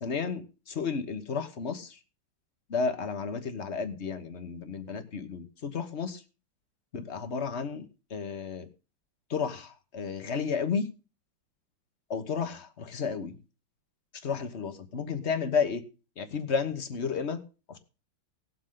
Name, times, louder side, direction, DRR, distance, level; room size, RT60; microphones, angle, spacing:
voice 1, 0.0-2.0 2.7-6.2 6.9-8.7 9.3-10.9 12.1-13.4 14.2-15.8 16.2-17.4 17.7-17.8, left 5 dB, 40° left, 9 dB, 1.4 m, -32 dB
18.0 x 7.7 x 3.8 m, 0.33 s
omnidirectional pair, 2.0 m